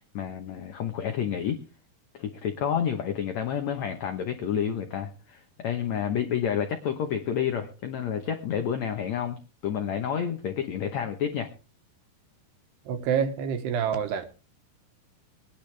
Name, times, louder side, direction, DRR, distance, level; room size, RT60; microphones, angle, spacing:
voice 1, 0.0-1.6 2.1-11.5, left 8 dB, 90° left, 1.5 m, -29 dB
voice 2, 12.9-14.2, right 7 dB, 85° right, 3.3 m, -27 dB
21.5 x 10.5 x 3.3 m
omnidirectional pair, 4.8 m